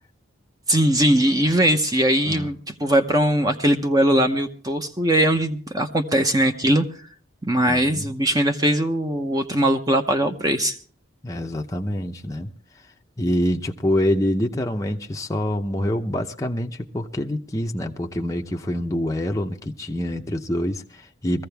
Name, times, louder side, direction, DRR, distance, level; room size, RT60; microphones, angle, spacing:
voice 1, 0.7-6.8 7.4-10.8, right 1 dB, 15° right, 0.8 m, -20 dB
voice 2, 7.7-8.1 11.2-12.5 13.2-21.5, left 1 dB, 15° left, 0.7 m, -26 dB
21.5 x 15.0 x 3.4 m
head